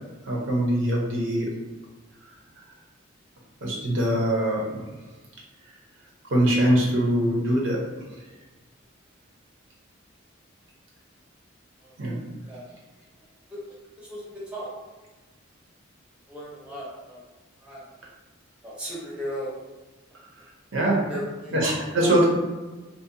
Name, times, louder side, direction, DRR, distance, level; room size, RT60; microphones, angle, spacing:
voice 1, 0.2-1.5 3.6-4.8 6.3-7.8 12.0-12.2 20.7-21.0 21.5-22.3, right 1 dB, 65° right, -3 dB, 0.6 m, -22 dB
voice 2, 11.8-12.2 12.5-12.6 13.5-13.6 14.0-14.3 14.5-14.7 16.3-17.2 17.6-17.8 18.6-19.6 21.1-22.2, equal, 5° right, -7 dB, 0.6 m, -37 dB
2.7 x 2.1 x 2.5 m, 1.2 s
head